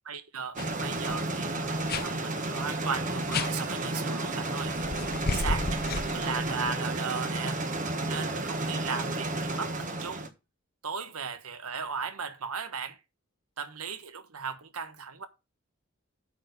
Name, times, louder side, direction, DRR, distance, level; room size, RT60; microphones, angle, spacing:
voice 1, 0.1-4.7 5.3-7.6 8.1-10.3 10.8-13.0 13.6-15.3, right 5 dB, 80° right, 1.4 m, -37 dB
sound 1, 0.6-0.7 1.0-1.2 1.9-2.1 3.3-3.5 4.8-6.7, left 3 dB, 45° left, 0.8 m, -32 dB
sound 2, 0.6-10.3, right 2 dB, 35° right, 1.4 m, -32 dB
8.7 x 4.5 x 6.8 m
head